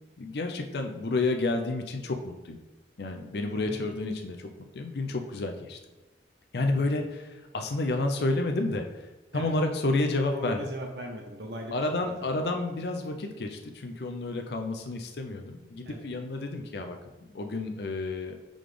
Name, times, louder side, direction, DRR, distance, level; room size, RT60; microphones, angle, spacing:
voice 1, 0.2-2.6 3.0-4.5 4.7-5.8 6.5-8.9 9.3-10.6 11.7-17.0 17.3-18.4, left 2 dB, 65° left, 4 dB, 0.5 m, -30 dB
voice 2, 10.3-11.8 12.1-12.3 15.8-16.1, equal, 70° right, 3 dB, 0.8 m, -38 dB
5.0 x 3.9 x 5.0 m, 1.1 s
head